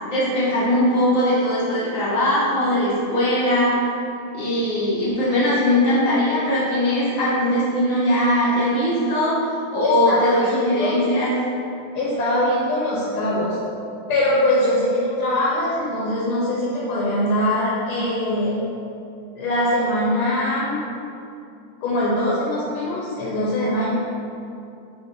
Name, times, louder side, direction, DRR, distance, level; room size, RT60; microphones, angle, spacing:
voice 1, 0.0-3.8 4.3-11.4, left 1 dB, 55° left, -9 dB, 0.9 m, -20 dB
voice 2, 9.8-11.0 11.9-13.6 14.1-18.6 19.4-20.8 21.8-24.0, left 1 dB, 80° left, -6 dB, 1.5 m, -22 dB
3.8 x 2.6 x 3.6 m, 2.6 s
omnidirectional pair, 2.4 m